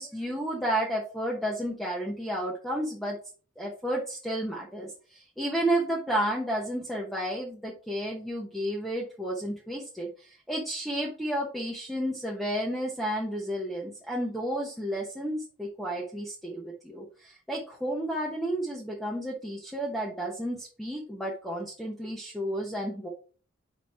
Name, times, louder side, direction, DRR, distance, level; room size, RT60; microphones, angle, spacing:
voice 1, 0.0-3.2 3.6-23.1, right 1 dB, ahead, -3 dB, 0.9 m, -32 dB
4.9 x 4.4 x 4.7 m, 0.38 s
head